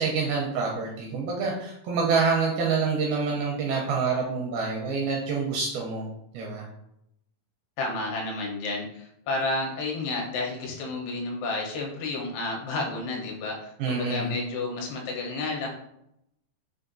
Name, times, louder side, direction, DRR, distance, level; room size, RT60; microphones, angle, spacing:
voice 1, 0.0-6.1 6.3-6.7 13.8-14.4, right 4 dB, 80° right, -2 dB, 2.2 m, -27 dB
voice 2, 7.8-15.7, left 2 dB, 80° left, -1 dB, 2.8 m, -31 dB
6.3 x 2.5 x 2.6 m, 0.78 s
omnidirectional pair, 4.9 m